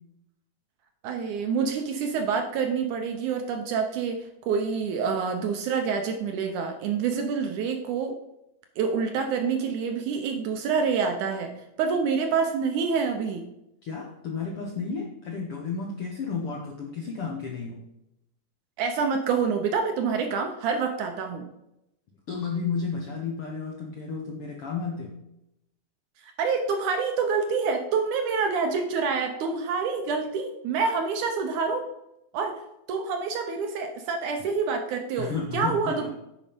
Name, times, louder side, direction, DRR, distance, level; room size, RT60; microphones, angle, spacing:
voice 1, 1.0-8.1 8.8-11.5 11.8-13.5 18.8-21.5 26.2-31.9 32.3-32.6 32.9-36.1, right 5 dB, 75° right, 5 dB, 1.9 m, -27 dB
voice 2, 13.8-17.8 22.3-25.1 35.2-36.1, left 5 dB, 70° left, 0 dB, 1.3 m, -32 dB
9.4 x 5.3 x 5.1 m, 0.85 s
omnidirectional pair, 4.1 m